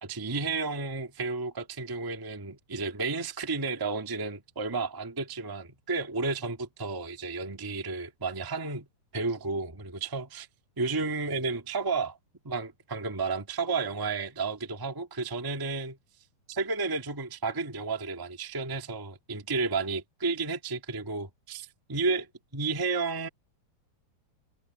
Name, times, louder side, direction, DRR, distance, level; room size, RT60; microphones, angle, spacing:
voice 1, 0.0-8.9 9.1-10.5 10.8-12.2 12.4-16.0 16.5-22.3 22.5-23.3, right 4 dB, 15° right, 0.7 m, -32 dB
omnidirectional pair, 3.6 m